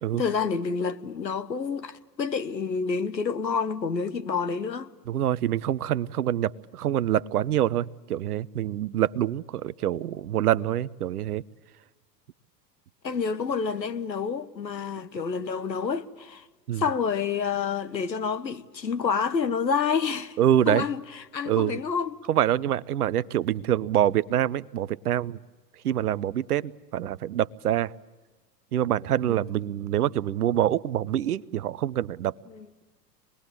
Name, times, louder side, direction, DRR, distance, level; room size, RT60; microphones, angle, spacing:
voice 1, 0.1-4.9 13.0-16.5 16.8-20.4 20.7-22.2 32.5-32.7, left 5 dB, 80° left, 1.2 m, -28 dB
voice 2, 5.1-11.4 16.7-16.9 20.4-20.9 21.5-21.8 22.3-25.4 25.8-27.9 28.7-32.3, right 11 dB, 65° right, 0.7 m, -25 dB
26.0 x 20.5 x 8.7 m
figure-of-eight pair, 90°, 50 cm